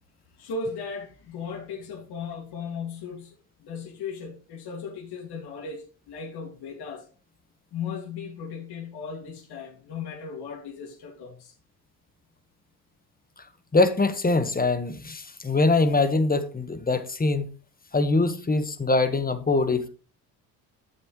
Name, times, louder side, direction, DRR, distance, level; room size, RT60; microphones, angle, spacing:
voice 1, 0.4-3.3 3.6-7.1 7.7-11.5, left 5 dB, 55° left, 2.4 m, -36 dB
voice 2, 13.7-17.5 17.9-19.9, left 3 dB, 20° left, 1.5 m, -23 dB
12.0 x 6.9 x 3.2 m
hypercardioid pair, 60°, 46 cm